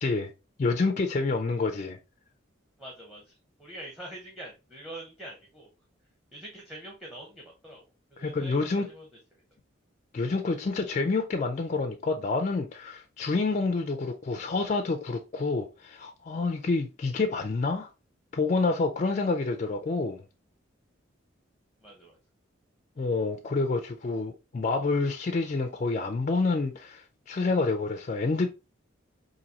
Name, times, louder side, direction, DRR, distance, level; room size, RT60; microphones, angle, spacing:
voice 1, 0.6-2.0 8.2-8.9 10.1-17.9 18.3-20.2 23.0-28.5, left 3 dB, 35° left, 0.3 m, -28 dB
voice 2, 2.8-5.7 6.3-7.8 8.1-9.1 21.8-22.2, right 1 dB, ahead, 0.7 m, -45 dB
4.0 x 2.6 x 2.8 m
head